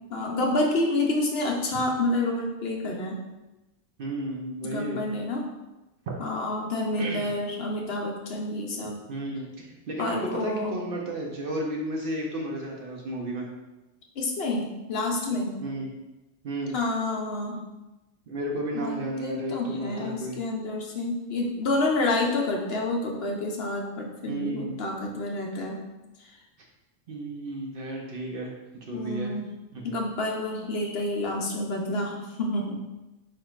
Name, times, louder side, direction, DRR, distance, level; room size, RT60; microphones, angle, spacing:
voice 1, 0.1-3.2 4.6-5.4 6.2-9.0 10.0-10.8 14.2-15.6 16.7-17.7 18.7-25.8 26.2-26.3 28.9-29.4 29.8-32.8, left 2 dB, 60° left, 0 dB, 0.9 m, -28 dB
voice 2, 4.0-5.1 7.0-7.3 9.1-13.5 15.6-15.9 16.4-16.8 18.3-20.4 24.3-24.8 27.1-28.5 28.8-29.3 29.7-30.0, right 1 dB, 55° right, -1 dB, 0.8 m, -33 dB
4.7 x 4.5 x 2.4 m, 1.0 s
omnidirectional pair, 1.2 m